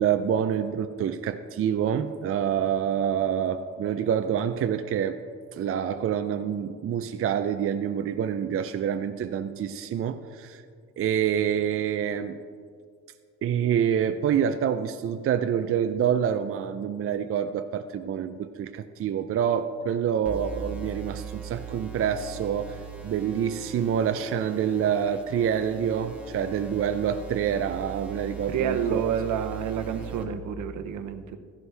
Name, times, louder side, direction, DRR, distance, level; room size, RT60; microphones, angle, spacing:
voice 1, 0.0-5.2 5.5-10.6 11.0-12.4 13.4-22.8 23.0-29.1, right 8 dB, 50° right, 8 dB, 0.5 m, -27 dB
sound 1, 20.2-30.2, right 5 dB, 5° right, 1.5 m, -40 dB
voice 2, 28.5-31.4, right 8 dB, 75° right, 8 dB, 0.8 m, -29 dB
14.5 x 11.0 x 3.4 m, 2.1 s
cardioid pair, 90°, 30 cm